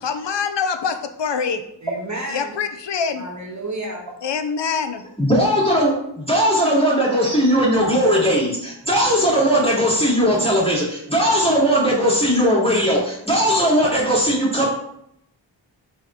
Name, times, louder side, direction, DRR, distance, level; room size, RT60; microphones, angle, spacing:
voice 1, 0.0-1.6 2.3-3.2 4.2-5.0, left 6 dB, 70° left, 9 dB, 0.7 m, -24 dB
voice 2, 1.8-2.6 3.1-4.1, right 1 dB, 40° right, -1 dB, 1.5 m, -31 dB
voice 3, 5.2-14.7, equal, 15° left, -5 dB, 2.5 m, -18 dB
4.9 x 4.0 x 5.7 m, 0.76 s
wide cardioid pair, 50°, 44 cm